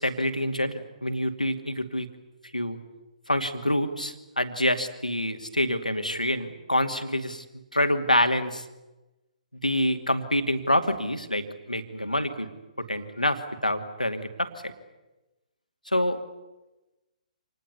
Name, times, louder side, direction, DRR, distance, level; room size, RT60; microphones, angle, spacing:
voice 1, 0.0-2.1 2.5-2.8 3.3-7.4 7.7-8.6 9.6-12.5 12.8-14.7 15.9-16.2, left 1 dB, 90° left, 7 dB, 2.5 m, -26 dB
26.5 x 19.5 x 9.8 m, 1.0 s
figure-of-eight pair, 130°, 4 cm